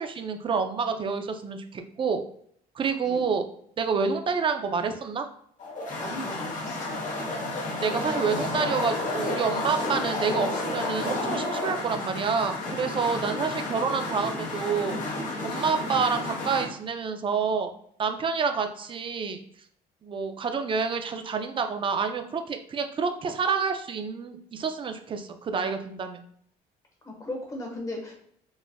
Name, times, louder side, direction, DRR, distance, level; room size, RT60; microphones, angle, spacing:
voice 1, 0.0-2.2 2.8-3.5 3.8-5.2 7.8-14.9 15.4-17.7 18.0-19.4 20.0-26.2, right 5 dB, 30° right, 6 dB, 0.4 m, -28 dB
sound 1, 5.6-16.7, left 2 dB, 50° left, 1.0 m, -31 dB
voice 2, 6.0-7.0 13.1-13.3 27.0-28.1, left 1 dB, 20° left, 0 dB, 1.2 m, -37 dB
4.0 x 2.4 x 2.2 m, 0.65 s
cardioid pair, 110°, 17 cm